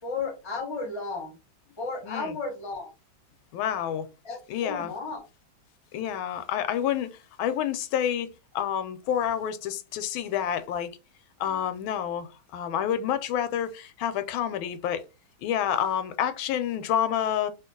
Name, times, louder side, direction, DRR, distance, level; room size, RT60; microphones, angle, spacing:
voice 1, 0.0-1.4 1.8-2.9 4.2-5.3, left 4 dB, 20° left, 0.7 m, -34 dB
voice 2, 3.5-4.1 4.5-4.9 5.9-10.9 11.4-15.0 15.4-17.5, left 9 dB, 85° left, 1.4 m, -28 dB
2.9 x 2.7 x 3.7 m
omnidirectional pair, 2.1 m